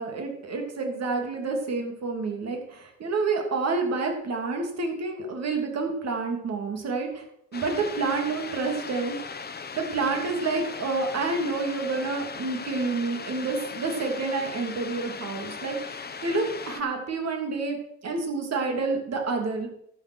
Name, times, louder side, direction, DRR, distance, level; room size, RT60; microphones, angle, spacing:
voice 1, 0.0-7.2 7.5-9.2 9.7-19.7, right 3 dB, 60° right, 3 dB, 3.0 m, -29 dB
sound 1, 7.5-16.8, left 5 dB, 30° left, 1.1 m, -38 dB
12.0 x 7.3 x 6.4 m, 0.74 s
cardioid pair, 90°, 30 cm